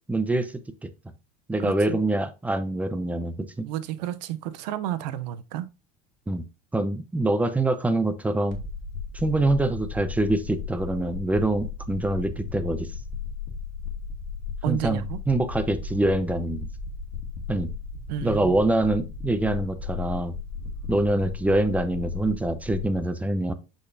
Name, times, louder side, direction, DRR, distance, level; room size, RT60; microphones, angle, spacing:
voice 1, 0.1-0.5 0.8-0.9 1.5-3.7 6.3-6.4 6.7-8.6 9.1-12.9 14.7-16.7 17.5-17.7 18.2-20.3 20.9-23.5, right 2 dB, 5° right, 0.7 m, -25 dB
voice 2, 1.6-2.0 3.6-5.7 14.6-15.2 18.1-18.6, right 12 dB, 80° right, 0.8 m, -31 dB
sound 1, 8.5-23.0, left 5 dB, 55° left, 1.9 m, -35 dB
6.4 x 5.6 x 2.7 m
supercardioid pair, 125°, 21 cm